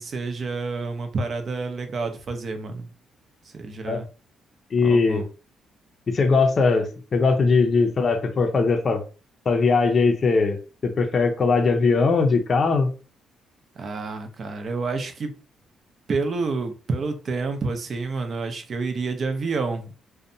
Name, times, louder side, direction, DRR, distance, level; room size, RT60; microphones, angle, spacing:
voice 1, 0.0-2.9 3.4-4.1 4.8-5.3 13.8-15.3 16.1-19.9, right 4 dB, 50° right, 0.5 m, -29 dB
voice 2, 4.7-5.2 6.1-9.0 9.5-10.6 10.8-12.9, left 4 dB, 45° left, 0.5 m, -20 dB
2.6 x 2.1 x 2.6 m
cardioid pair, 90°, 0 cm